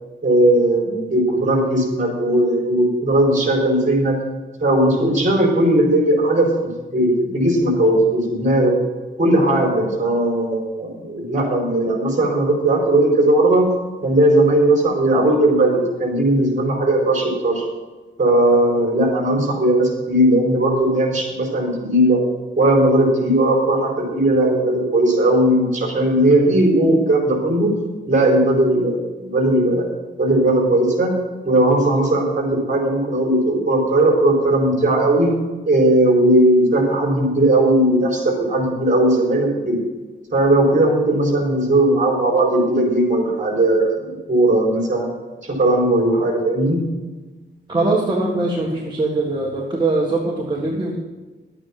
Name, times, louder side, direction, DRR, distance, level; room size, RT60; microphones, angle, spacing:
voice 1, 0.2-4.2 4.6-6.5 6.9-8.7 9.2-13.7 14.0-17.6 18.2-22.2 22.6-27.7 28.1-29.9 30.2-31.1 31.4-35.3 35.6-39.8 40.3-45.1 45.4-46.8, right 1 dB, 40° right, -1 dB, 4.4 m, -17 dB
voice 2, 47.7-51.0, right 2 dB, 25° right, -3 dB, 1.7 m, -21 dB
11.5 x 8.9 x 5.9 m, 1.3 s
wide cardioid pair, 135°, 20 cm